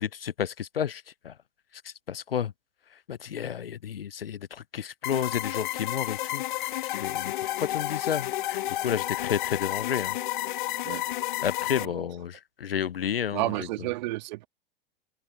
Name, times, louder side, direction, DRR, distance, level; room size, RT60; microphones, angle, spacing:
voice 1, 0.0-1.3 2.1-2.5 3.1-6.7 7.0-7.3 7.6-10.1 11.4-13.4, left 9 dB, 75° left, 0.6 m, -31 dB
sound 1, 5.0-11.9, left 15 dB, 55° left, 1.1 m, -31 dB
voice 2, 11.8-12.1 13.3-14.5, right 19 dB, 50° right, 2.1 m, -31 dB
open air
figure-of-eight pair, 90°, 29 cm